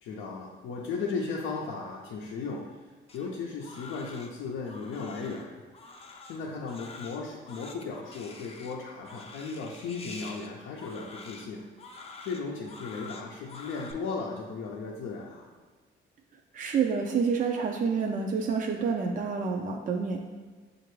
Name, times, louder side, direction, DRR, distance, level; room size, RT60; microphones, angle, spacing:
voice 1, 0.0-2.8 3.1-5.5 6.2-11.6 12.2-15.5, left 4 dB, 85° left, -3 dB, 0.5 m, -36 dB
Crying sobbing, 3.1-13.9, left 3 dB, 30° left, 0.5 m, -47 dB
voice 2, 16.5-20.2, right 5 dB, 40° right, 2 dB, 0.4 m, -28 dB
6.6 x 2.5 x 3.1 m, 1.4 s
cardioid pair, 90°, 20 cm